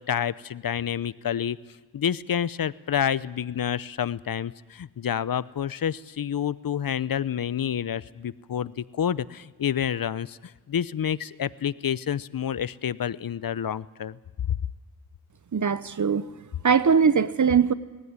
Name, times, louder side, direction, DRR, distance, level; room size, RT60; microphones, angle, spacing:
voice 1, 0.0-1.6 1.9-14.2 14.5-14.6, left 9 dB, 60° left, 19 dB, 0.7 m, -28 dB
voice 2, 15.5-16.3 16.6-17.7, right 6 dB, 50° right, 16 dB, 0.9 m, -21 dB
19.5 x 15.5 x 9.7 m, 1.2 s
cardioid pair, 50°, 39 cm